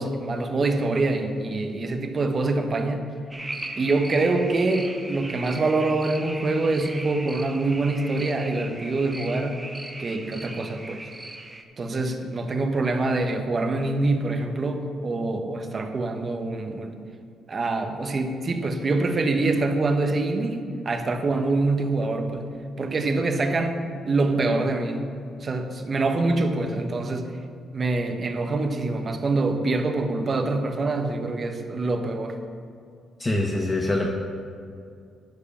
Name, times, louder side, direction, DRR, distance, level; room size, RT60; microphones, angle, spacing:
voice 1, 0.0-3.1 3.8-9.6 10.0-11.0 11.8-16.9 17.5-22.4 22.8-25.1 25.4-27.3 27.7-32.3, right 2 dB, 40° right, 5 dB, 1.1 m, -25 dB
sound 1, 3.3-11.6, right 2 dB, 15° right, 1.0 m, -38 dB
voice 2, 33.2-34.1, left 2 dB, 20° left, 0 dB, 0.9 m, -24 dB
12.0 x 5.0 x 7.0 m, 2.3 s
cardioid pair, 90°, 0 cm